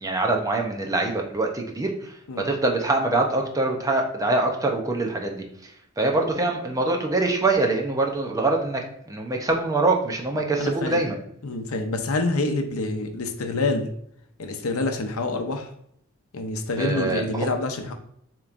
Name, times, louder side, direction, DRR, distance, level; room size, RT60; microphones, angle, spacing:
voice 1, 0.0-11.2 16.8-17.5, right 2 dB, 15° right, 1 dB, 0.7 m, -24 dB
voice 2, 10.6-11.0 11.4-13.9 14.4-15.7 16.3-17.9, left 2 dB, 80° left, 5 dB, 0.6 m, -27 dB
6.8 x 3.0 x 2.5 m, 0.70 s
head